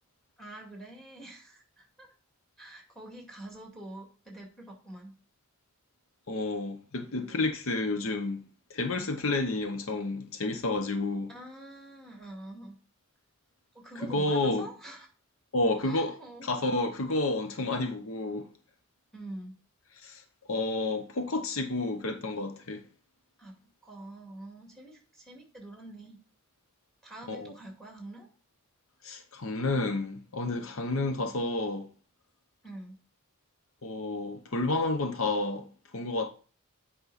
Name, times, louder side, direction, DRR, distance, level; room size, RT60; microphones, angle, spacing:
voice 1, 0.4-2.1 2.6-5.1 11.3-12.8 13.7-15.1 15.8-16.5 19.1-19.5 23.4-23.6 23.8-26.2 27.0-28.3 32.6-33.0, right 1 dB, ahead, 2.1 m, -45 dB
voice 2, 6.3-8.4 8.7-11.3 14.0-14.7 15.5-18.5 20.0-20.2 20.5-22.8 27.3-27.5 29.0-31.9 33.8-35.7 35.9-36.3, left 2 dB, 75° left, 0.8 m, -30 dB
8.2 x 5.5 x 4.1 m
head